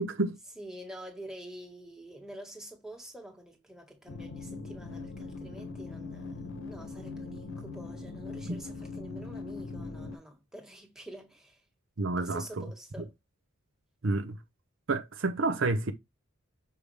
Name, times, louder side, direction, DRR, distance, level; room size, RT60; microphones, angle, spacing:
voice 1, 0.0-0.4 8.5-8.6 12.0-12.4 14.0-14.4 14.9-15.9, right 2 dB, 60° right, 0.8 m, -29 dB
voice 2, 0.6-11.6 12.2-13.1, right 1 dB, 5° right, 1.6 m, -47 dB
sound 1, 4.1-10.2, left 3 dB, 60° left, 1.0 m, -41 dB
6.9 x 4.9 x 3.3 m
head